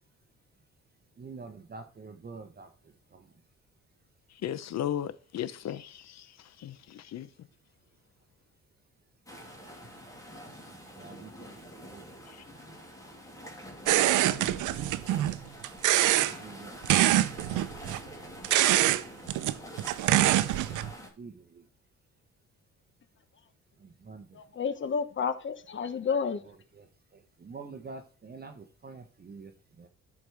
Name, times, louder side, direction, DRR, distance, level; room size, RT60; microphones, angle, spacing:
voice 1, 1.2-2.7 3.1-3.3 10.7-12.0 16.3-16.8 21.2-21.6 23.8-24.3 26.7-26.9 27.1-29.5 29.8-29.9, right 4 dB, 30° right, 1.0 m, -46 dB
voice 2, 4.4-7.3 12.3-12.4, left 10 dB, 60° left, 0.7 m, -36 dB
sound 1, 9.3-21.1, equal, 10° left, 2.8 m, -46 dB
sound 2, 13.9-15.4 15.6-16.3 16.8-18.0 18.4-19.0 19.3-20.9, right 14 dB, 80° right, 0.6 m, -24 dB
voice 3, 24.4-26.4, left 6 dB, 40° left, 1.1 m, -30 dB
12.0 x 4.8 x 3.4 m
cardioid pair, 90°, 30 cm